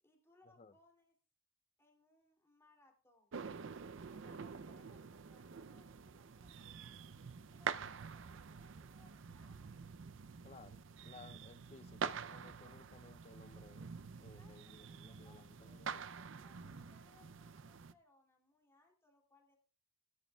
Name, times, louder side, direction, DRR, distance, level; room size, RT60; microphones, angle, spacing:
voice 1, 0.0-1.2 1.8-3.3 4.1-7.1 7.5-9.7 14.3-15.8 16.2-19.6, left 2 dB, 10° left, 2.7 m, -70 dB
sound 1, 3.3-17.9, right 6 dB, 60° right, 0.5 m, -47 dB
voice 2, 10.4-13.9 14.2-16.0, left 3 dB, 30° left, 0.5 m, -59 dB
18.5 x 11.0 x 2.3 m
head